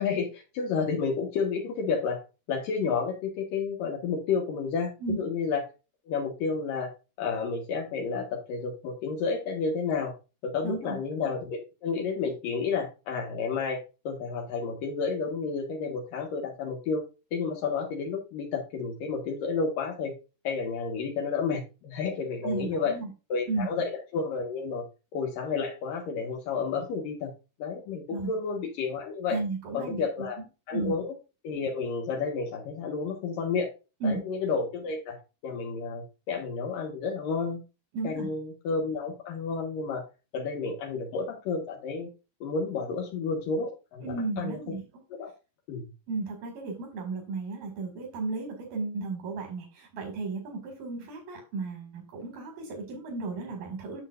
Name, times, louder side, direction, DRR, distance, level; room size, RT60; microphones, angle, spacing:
voice 1, 0.0-2.2 2.5-5.6 6.1-6.9 7.2-10.1 10.4-17.0 17.3-20.1 20.4-22.9 23.3-24.8 25.1-27.3 27.6-29.4 29.7-30.4 30.7-31.1 31.4-33.7 34.0-35.2 35.4-37.6 38.0-40.0 40.3-42.1 42.4-44.6 45.1-45.3 45.7-45.9, left 5 dB, 75° left, 1 dB, 3.0 m, -31 dB
voice 2, 10.6-11.0 22.4-23.1 23.5-23.7 28.1-28.3 29.3-30.1 30.4-30.5 30.7-31.0 34.0-34.2 37.9-38.3 44.0-44.8 46.1-54.0, right 3 dB, 85° right, 1 dB, 3.9 m, -34 dB
9.1 x 7.0 x 2.5 m, 0.30 s
omnidirectional pair, 4.0 m